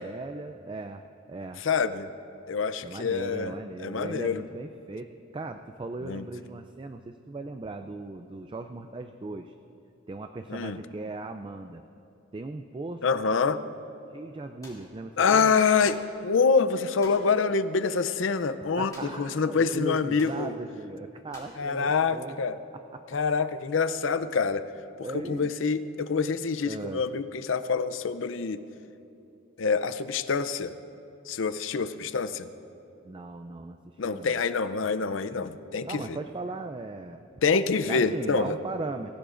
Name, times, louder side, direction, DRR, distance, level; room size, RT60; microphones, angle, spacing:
voice 1, 0.0-1.6 2.8-9.5 10.1-11.8 12.3-13.1 14.1-15.5 18.6-22.4 22.7-23.0 25.0-25.5 26.6-27.0 33.0-34.4 35.8-37.2 37.9-39.2, right 3 dB, 25° right, 7 dB, 0.4 m, -38 dB
voice 2, 1.6-2.1 2.5-3.5 3.8-4.4 6.1-6.2 10.5-10.8 13.0-13.6 15.2-18.9 19.2-20.5 21.6-22.6 23.1-24.6 25.3-28.6 29.6-30.7 31.3-32.5 34.0-36.2 37.4-38.6, left 5 dB, 75° left, 13 dB, 0.6 m, -26 dB
sound 1, 14.6-14.9 15.9-16.1 17.0-17.3 18.9-19.3 19.6-19.7 20.2-20.4 21.3-21.6, left 2 dB, 20° left, 2.8 m, -48 dB
24.0 x 15.5 x 2.5 m, 2.8 s
head